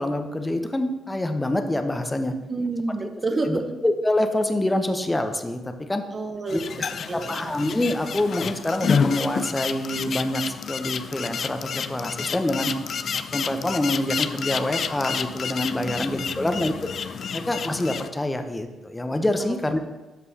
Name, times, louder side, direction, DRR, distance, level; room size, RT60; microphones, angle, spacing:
voice 1, 0.0-2.3 3.3-6.0 6.5-12.7 13.1-16.7 17.3-19.8, left 1 dB, 15° left, 7 dB, 0.9 m, -26 dB
voice 2, 2.5-3.6 6.1-6.7 7.1-7.5 15.9-16.0 16.3-16.5 19.4-19.8, right 3 dB, 40° right, 7 dB, 0.9 m, -29 dB
sound 1, 6.5-18.1, left 6 dB, 55° left, 0.4 m, -30 dB
13.0 x 5.3 x 2.9 m, 1.1 s
hypercardioid pair, 45°, 0 cm